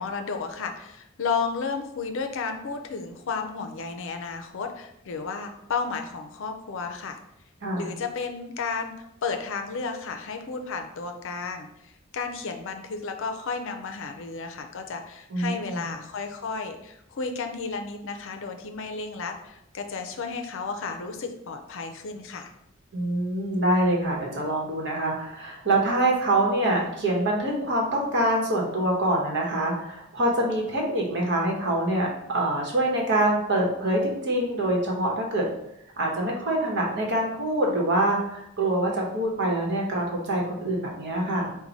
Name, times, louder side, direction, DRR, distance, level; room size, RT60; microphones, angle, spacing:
voice 1, 0.0-7.2 7.8-22.5, left 5 dB, 65° left, 6 dB, 0.5 m, -33 dB
voice 2, 15.3-15.8 22.9-32.1 32.3-35.5 36.0-41.6, right 1 dB, 55° right, -1 dB, 1.0 m, -25 dB
4.6 x 2.2 x 4.0 m, 0.81 s
head